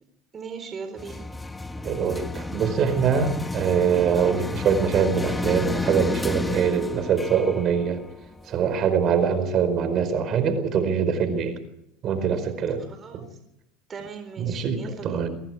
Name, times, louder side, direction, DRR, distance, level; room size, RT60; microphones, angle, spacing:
voice 1, 0.3-1.3 12.9-13.2 13.9-15.2, right 5 dB, 30° right, 7 dB, 4.1 m, -38 dB
sound 1, 1.0-8.9, left 2 dB, 10° left, 1.6 m, -32 dB
voice 2, 1.8-8.0 8.5-11.5 12.0-12.8 13.1-13.2 14.4-15.3, right 7 dB, 45° right, 11 dB, 4.7 m, -23 dB
24.5 x 22.5 x 4.9 m, 0.81 s
hypercardioid pair, 100°, 0 cm